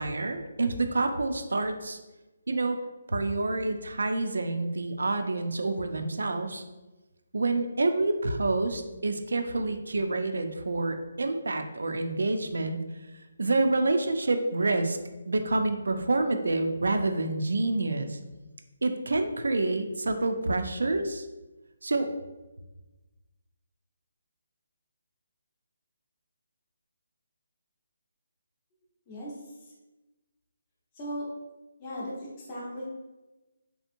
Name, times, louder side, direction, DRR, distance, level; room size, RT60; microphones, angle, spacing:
voice 1, 0.0-2.0 2.5-2.8 3.1-6.6 7.3-12.8 13.4-15.0 15.3-18.2 18.8-21.3 21.8-22.1, right 2 dB, 90° right, 7 dB, 0.4 m, -28 dB
voice 2, 31.0-31.3 31.8-32.1 32.5-32.8, equal, 20° left, -5 dB, 0.6 m, -36 dB
3.4 x 2.7 x 2.6 m, 1.1 s
hypercardioid pair, 175°, 0 cm